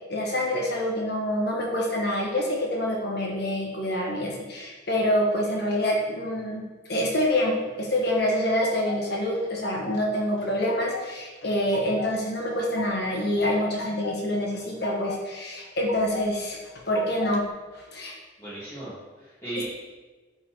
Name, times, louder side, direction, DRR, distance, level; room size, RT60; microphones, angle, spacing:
voice 1, 0.1-6.6 6.9-16.6 16.9-17.5 17.9-18.2 19.6-19.7, left 1 dB, 55° left, -1 dB, 1.4 m, -26 dB
sound 1, 8.0-9.0 9.3-10.1 10.4-11.1 11.4-12.1 12.5-13.2 13.5-14.2 14.5-15.2 15.6-16.3 16.6-17.4, left 3 dB, 75° left, 0.6 m, -38 dB
voice 2, 18.4-19.6, right 2 dB, 15° left, -12 dB, 1.8 m, -36 dB
10.5 x 4.0 x 3.1 m, 1.3 s
head